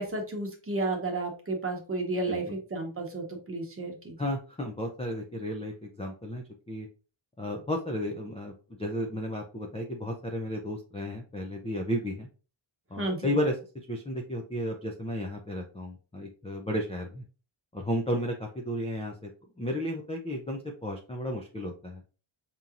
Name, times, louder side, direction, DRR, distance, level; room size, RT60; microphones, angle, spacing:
voice 1, 0.0-4.2 13.0-13.4, right 2 dB, 25° right, 1 dB, 1.0 m, -32 dB
voice 2, 4.2-6.9 7.4-12.3 12.9-13.5 13.9-17.2 17.7-19.3 19.6-22.0, equal, 15° left, 1 dB, 0.4 m, -33 dB
5.3 x 2.9 x 2.4 m, 0.36 s
wide cardioid pair, 160°, 49 cm